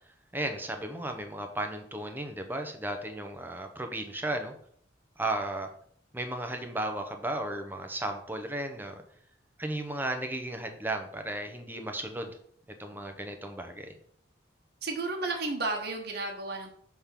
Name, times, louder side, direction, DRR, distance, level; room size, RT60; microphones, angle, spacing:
voice 1, 0.3-4.5 5.2-5.7 6.1-9.0 9.6-12.4 12.8-13.9, right 1 dB, 10° right, 5 dB, 0.8 m, -34 dB
voice 2, 14.8-16.7, right 3 dB, 55° right, 1 dB, 1.1 m, -32 dB
6.5 x 3.6 x 5.8 m, 0.63 s
head